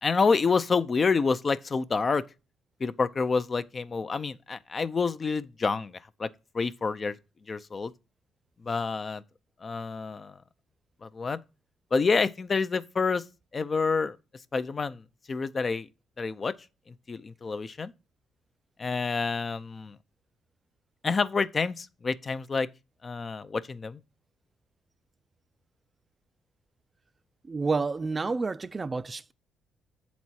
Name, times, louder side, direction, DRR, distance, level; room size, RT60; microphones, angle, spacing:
voice 1, 0.0-2.2 2.8-6.3 6.5-7.2 7.5-7.9 8.6-9.2 9.6-10.4 11.0-11.4 11.9-13.2 13.5-14.2 14.5-15.9 16.2-16.6 17.1-17.9 18.8-20.0 21.0-22.7 23.0-24.0, left 4 dB, 35° left, 0.5 m, -28 dB
voice 2, 27.5-29.3, right 4 dB, 30° right, 0.4 m, -29 dB
7.4 x 4.1 x 4.5 m
cardioid pair, 90°, 0 cm